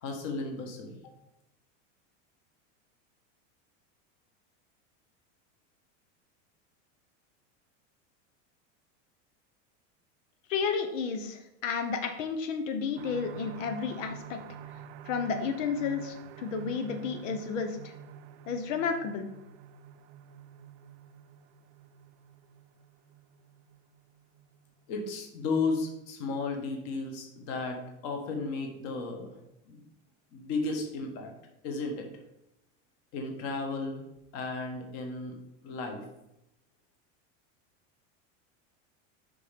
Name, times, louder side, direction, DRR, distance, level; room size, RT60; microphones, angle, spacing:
voice 1, 0.0-1.0 24.9-29.3 29.7-29.8 30.3-31.3 31.6-32.1 33.1-34.0 34.3-35.3 35.6-36.0, left 3 dB, 40° left, 3 dB, 1.5 m, -34 dB
voice 2, 10.5-14.4 15.1-17.9 18.5-19.2, left 5 dB, 90° left, 6 dB, 1.0 m, -32 dB
sound 1, 13.0-26.4 26.9-27.0 27.4-27.5, right 8 dB, 70° right, 0.5 m, -48 dB
5.5 x 5.5 x 5.1 m, 0.86 s
supercardioid pair, 170°, 37 cm